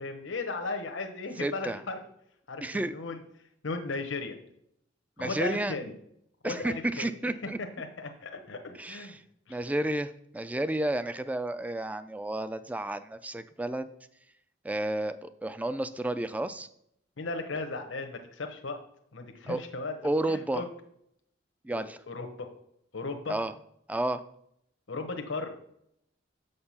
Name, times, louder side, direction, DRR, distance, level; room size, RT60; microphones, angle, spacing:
voice 1, 0.0-2.0 2.5-3.2 3.6-4.4 5.2-5.9 6.4-7.1 7.4-7.5 7.8-9.2 9.5-9.6 17.2-18.8 19.1-19.9 20.3-20.7 21.7-22.5 22.9-23.4 24.9-25.6, left 3 dB, 90° left, 4 dB, 1.0 m, -36 dB
voice 2, 1.4-1.8 2.6-2.9 5.2-5.8 6.4-7.6 8.8-9.2 9.5-13.9 14.6-16.7 19.5-19.6 20.0-20.6 21.6-22.0 23.3-23.5 23.9-24.2, right 1 dB, 10° right, 12 dB, 0.3 m, -31 dB
6.7 x 6.6 x 5.6 m, 0.75 s
head